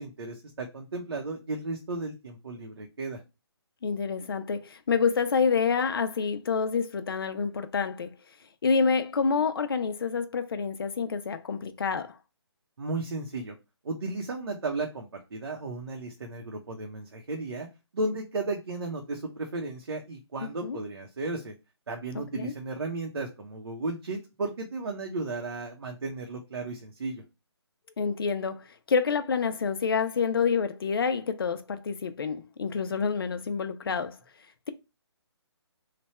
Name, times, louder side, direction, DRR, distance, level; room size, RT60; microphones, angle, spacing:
voice 1, 0.0-3.2 12.8-13.5 13.8-17.7 17.9-21.5 21.9-27.2, right 3 dB, 65° right, 0.8 m, -34 dB
voice 2, 3.8-8.1 8.6-12.2 20.4-20.8 22.3-22.5 28.0-34.2, left 5 dB, 55° left, 0.5 m, -28 dB
3.3 x 2.2 x 4.2 m
hypercardioid pair, 170°, 14 cm